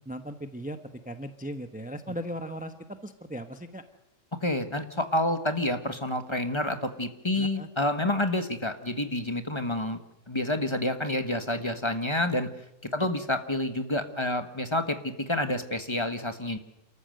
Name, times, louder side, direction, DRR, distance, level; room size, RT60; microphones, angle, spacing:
voice 1, 0.1-3.8 7.4-7.7, equal, 5° right, 8 dB, 0.9 m, -38 dB
voice 2, 4.4-10.0 10.3-12.5 12.9-16.6, left 1 dB, 20° left, 8 dB, 1.4 m, -28 dB
29.0 x 14.5 x 7.8 m, 0.87 s
omnidirectional pair, 1.3 m